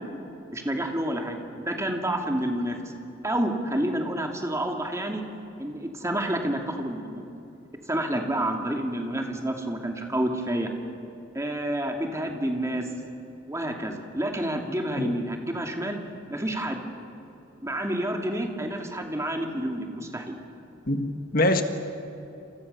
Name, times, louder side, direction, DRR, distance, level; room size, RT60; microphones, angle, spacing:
voice 1, 0.5-1.4 1.7-2.9 3.2-5.2 5.6-7.0 7.9-10.7 11.3-12.9 13.5-16.0 16.3-16.8 17.6-20.4, right 1 dB, 15° right, 2.7 m, -29 dB
voice 2, 20.9-21.6, left 1 dB, 50° left, 1.6 m, -24 dB
28.5 x 28.5 x 7.0 m
head